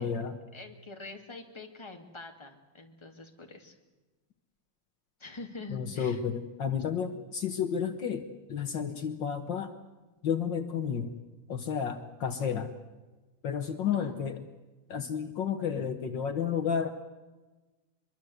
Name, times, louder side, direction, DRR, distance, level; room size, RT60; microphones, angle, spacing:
voice 1, 0.0-0.4 5.7-9.7 10.2-11.2 11.5-12.7 13.4-14.4 14.9-16.9, left 7 dB, 65° left, 8 dB, 1.9 m, -31 dB
voice 2, 0.5-3.7 5.2-6.2 7.1-7.2 13.8-14.1, left 3 dB, 15° left, 3 dB, 2.6 m, -45 dB
24.5 x 23.0 x 8.0 m, 1.2 s
omnidirectional pair, 2.3 m